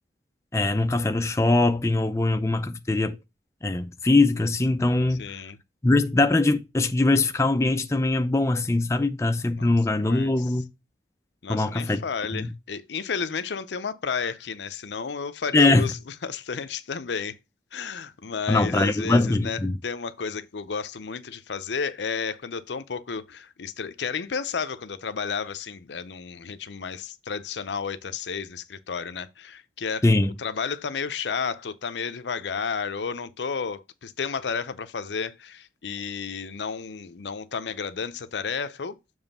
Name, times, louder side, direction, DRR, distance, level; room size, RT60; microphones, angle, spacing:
voice 1, 0.5-3.2 3.6-5.2 5.8-10.6 11.5-12.0 12.3-12.5 15.5-15.9 18.5-19.7 30.0-30.3, left 2 dB, 15° left, 0.4 m, -22 dB
voice 2, 5.1-5.6 9.5-10.5 11.4-17.4 17.7-30.0 30.4-39.0, left 5 dB, 80° left, 0.6 m, -32 dB
7.1 x 3.1 x 5.4 m
head